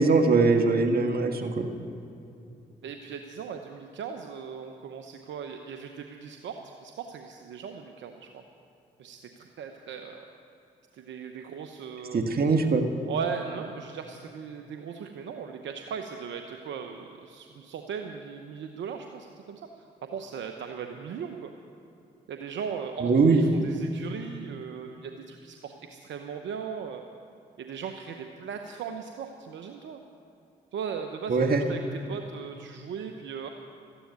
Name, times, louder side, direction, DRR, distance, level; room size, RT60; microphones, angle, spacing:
voice 1, 0.0-1.7 12.1-12.8 23.0-23.7 31.3-31.6, right 3 dB, 55° right, 5 dB, 1.7 m, -22 dB
voice 2, 2.8-8.4 9.0-10.2 10.9-12.2 13.1-19.6 20.0-21.5 22.3-27.0 27.6-30.0 30.7-31.8 32.1-33.5, right 6 dB, 75° right, 5 dB, 0.9 m, -38 dB
13.5 x 10.0 x 9.2 m, 2.8 s
supercardioid pair, 50°, 19 cm